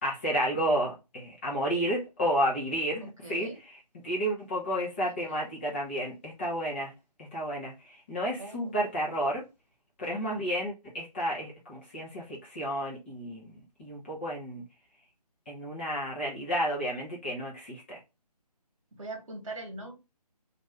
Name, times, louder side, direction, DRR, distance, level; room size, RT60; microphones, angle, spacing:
voice 1, 0.0-3.5 4.0-6.9 7.2-9.5 10.0-14.6 15.5-18.0, equal, 15° left, 0.7 m, -31 dB
voice 2, 3.0-3.6 8.4-8.8 18.9-19.9, right 2 dB, 50° right, 1.3 m, -41 dB
3.0 x 2.6 x 3.1 m
figure-of-eight pair, 150°, 21 cm